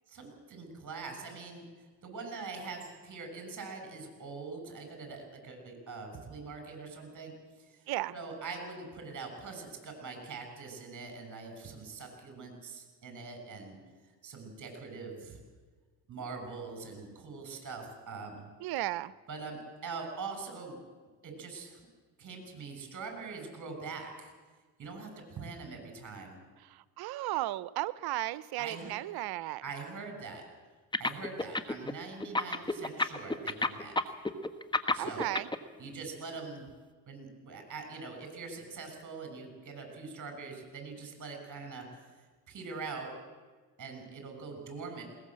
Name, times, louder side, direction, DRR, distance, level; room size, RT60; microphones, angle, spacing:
voice 1, 0.1-1.6 2.0-13.8 14.2-15.4 16.1-18.5 19.3-20.8 21.2-21.8 22.2-24.3 24.8-26.4 28.6-28.9 29.6-30.4 31.0-34.1 34.9-35.3 35.8-36.7 37.1-42.2 42.5-43.1 43.8-45.0, right 4 dB, 50° right, 5 dB, 7.2 m, -43 dB
voice 2, 18.6-19.1 26.6-29.6 35.0-35.5, right 16 dB, 70° right, 18 dB, 0.8 m, -35 dB
sound 1, 30.9-31.9 32.2-35.6, left 2 dB, 10° left, 1.4 m, -29 dB
21.0 x 19.0 x 7.6 m, 1.4 s
supercardioid pair, 80°, 39 cm